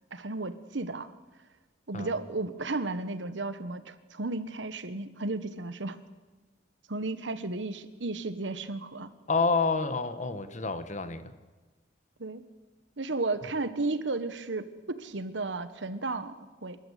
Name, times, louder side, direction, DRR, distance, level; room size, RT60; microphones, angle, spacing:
voice 1, 0.1-1.1 1.9-6.0 6.9-9.1 12.2-12.4 13.0-16.8, right 3 dB, 75° right, 12 dB, 1.2 m, -34 dB
voice 2, 9.3-11.3, left 4 dB, 40° left, 11 dB, 1.3 m, -28 dB
26.5 x 13.5 x 8.3 m, 1.3 s
head